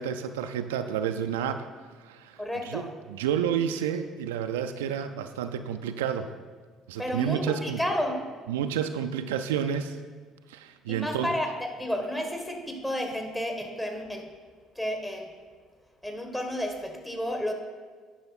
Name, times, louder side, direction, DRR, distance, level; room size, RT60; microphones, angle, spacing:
voice 1, 0.0-1.7 2.0-6.3 6.9-7.8 8.5-10.0 10.5-11.3, right 8 dB, 75° right, 8 dB, 0.3 m, -30 dB
voice 2, 2.4-2.9 7.0-8.2 10.9-14.3 14.7-15.3 16.0-17.5, equal, 15° left, 3 dB, 1.7 m, -31 dB
9.8 x 5.6 x 4.3 m, 1.5 s
hypercardioid pair, 55°, 0 cm